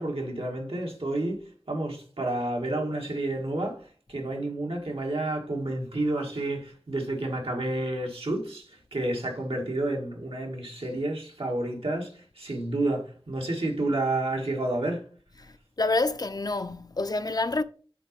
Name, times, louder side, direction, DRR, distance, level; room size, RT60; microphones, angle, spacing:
voice 1, 0.0-3.8 4.1-15.0, right 2 dB, 85° right, 1.8 m, -30 dB
voice 2, 15.4-17.6, left 2 dB, 45° left, 0.5 m, -28 dB
5.9 x 4.1 x 5.2 m
wide cardioid pair, 50°, 9 cm